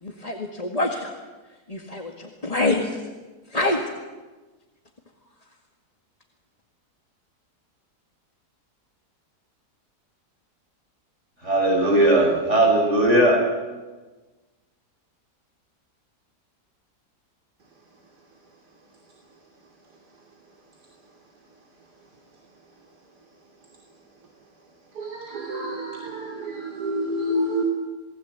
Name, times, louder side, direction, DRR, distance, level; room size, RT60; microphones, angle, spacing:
voice 1, 0.0-1.1 1.7-3.0 3.5-3.8, left 2 dB, 20° left, 2 dB, 1.9 m, -26 dB
voice 2, 11.4-13.5, right 1 dB, 45° right, 2 dB, 5.9 m, -18 dB
voice 3, 18.8-19.4 19.8-20.2 20.7-21.2 22.0-22.8 23.6-24.3 24.6-27.6, equal, 75° right, 0 dB, 3.4 m, -32 dB
28.5 x 20.0 x 8.2 m, 1.2 s
omnidirectional pair, 1.8 m